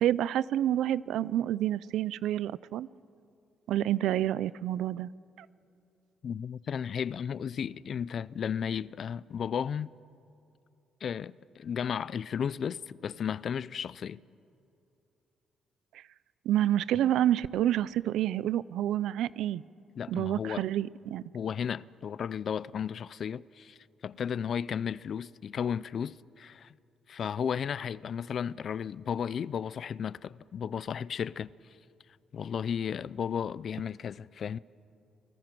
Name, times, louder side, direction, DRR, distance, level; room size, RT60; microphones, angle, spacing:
voice 1, 0.0-2.9 3.7-5.1 5.4-5.5 15.9-16.0 16.5-19.6 20.1-21.3, right 12 dB, 85° right, 0.5 m, -28 dB
voice 2, 6.2-9.9 11.0-14.2 20.0-20.7 21.3-23.8 24.0-26.7 27.1-31.5 32.3-34.6, left 7 dB, 55° left, 0.5 m, -34 dB
29.0 x 19.5 x 6.1 m
cardioid pair, 90°, 0 cm